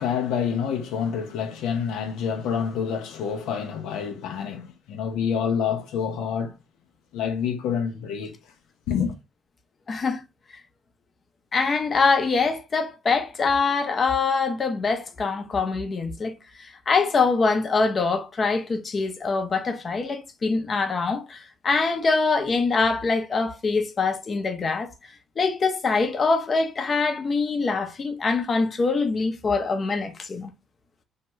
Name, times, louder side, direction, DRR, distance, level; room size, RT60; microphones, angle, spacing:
voice 1, 0.0-6.5 7.1-8.4 8.9-9.1, left 7 dB, 80° left, 0.5 m, -27 dB
voice 2, 9.9-10.2 11.5-24.9 25.4-30.5, left 4 dB, 40° left, 0.6 m, -24 dB
2.7 x 2.2 x 2.9 m
cardioid pair, 85°, 0 cm